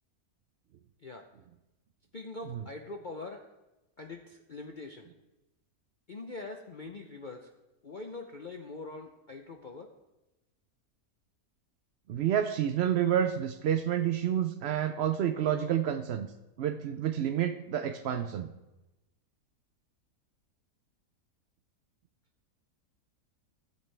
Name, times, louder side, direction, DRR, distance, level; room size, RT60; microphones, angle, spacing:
voice 1, 2.1-3.5 4.0-5.1 6.1-7.5 7.8-9.9, left 3 dB, 55° left, 3 dB, 0.5 m, -43 dB
voice 2, 12.1-16.3 16.6-18.5, right 10 dB, 90° right, 8 dB, 0.5 m, -29 dB
14.0 x 8.1 x 3.3 m, 0.99 s
omnidirectional pair, 1.7 m